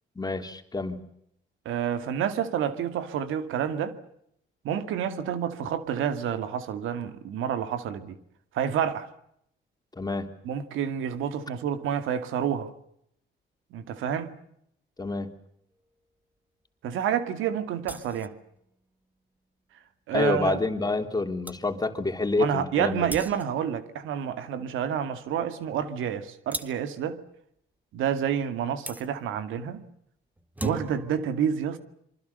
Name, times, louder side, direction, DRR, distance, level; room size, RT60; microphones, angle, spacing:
voice 1, 0.1-1.1 10.0-10.3 15.0-15.3 20.1-23.1, left 3 dB, 20° left, 3.4 m, -28 dB
voice 2, 1.7-4.0 4.6-8.2 8.5-9.1 10.4-12.7 13.7-14.3 16.8-18.3 20.1-20.6 22.4-27.2 27.9-29.8 30.6-31.8, right 8 dB, 85° right, 2.4 m, -29 dB
sound 1, 17.8-18.4 21.1-21.2 21.4-21.6 23.1-23.6 26.5-26.9 28.9-29.1 30.4-31.2, right 2 dB, 10° right, 1.8 m, -36 dB
26.5 x 24.5 x 6.9 m
cardioid pair, 90°, 20 cm